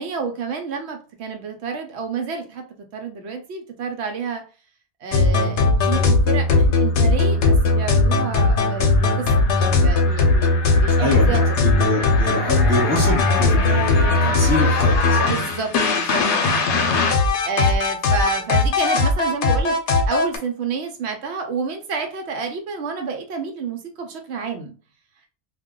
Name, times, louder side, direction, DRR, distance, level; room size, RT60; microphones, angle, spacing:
voice 1, 0.0-2.6 2.9-4.4 5.0-11.4 15.1-16.6 17.4-19.8 20.1-24.7, right 5 dB, 80° right, 4 dB, 0.9 m, -29 dB
sound 1, 5.1-20.4, left 3 dB, 85° left, 0.9 m, -18 dB
voice 2, 11.0-15.3, left 1 dB, 15° left, -4 dB, 1.0 m, -25 dB
2.2 x 2.2 x 3.6 m, 0.37 s
omnidirectional pair, 1.1 m